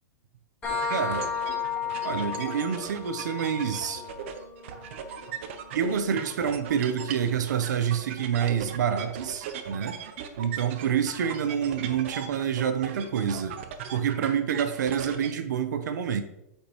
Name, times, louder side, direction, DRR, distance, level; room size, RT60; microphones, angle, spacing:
sound 1, 0.6-8.0, left 6 dB, 10° left, 2.7 m, -35 dB
sound 2, 0.7-15.3, right 7 dB, 45° right, 0.7 m, -39 dB
voice 1, 0.9-1.3 2.0-4.0 5.7-10.0 10.4-13.6 13.9-16.2, right 8 dB, 85° right, 10 dB, 0.7 m, -27 dB
8.6 x 5.2 x 3.0 m, 0.85 s
supercardioid pair, 175°, 9 cm